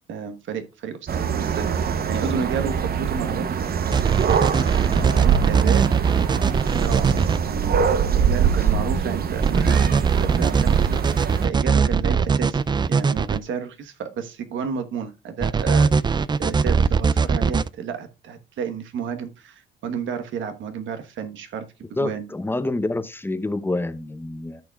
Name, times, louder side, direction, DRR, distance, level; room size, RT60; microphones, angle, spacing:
voice 1, 0.1-4.3 5.1-5.8 6.8-7.1 7.4-15.9 16.4-21.7 22.0-22.3, right 6 dB, 75° right, 1.2 m, -31 dB
sound 1, 1.1-11.5, right 7 dB, 50° right, 0.8 m, -24 dB
sound 2, 3.9-7.4 9.4-13.4 15.4-17.7, right 6 dB, 20° right, 0.4 m, -20 dB
voice 2, 21.9-24.6, left 2 dB, 10° left, 0.8 m, -27 dB
13.5 x 6.0 x 2.3 m
cardioid pair, 90°, 20 cm